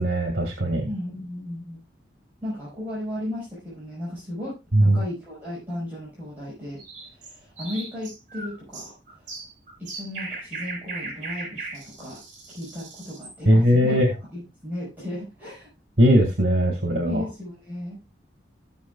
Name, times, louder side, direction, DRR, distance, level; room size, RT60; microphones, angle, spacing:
voice 1, 0.0-0.9 4.7-5.0 13.5-14.1 16.0-17.2, equal, 65° right, 2 dB, 2.0 m, -19 dB
voice 2, 0.8-1.8 2.4-9.3 9.8-12.2 12.5-14.0 14.3-15.7 17.0-18.0, left 1 dB, 10° right, -8 dB, 4.7 m, -35 dB
sound 1, 6.8-13.4, right 3 dB, 40° right, 4.3 m, -38 dB
16.5 x 6.5 x 2.3 m, 0.26 s
head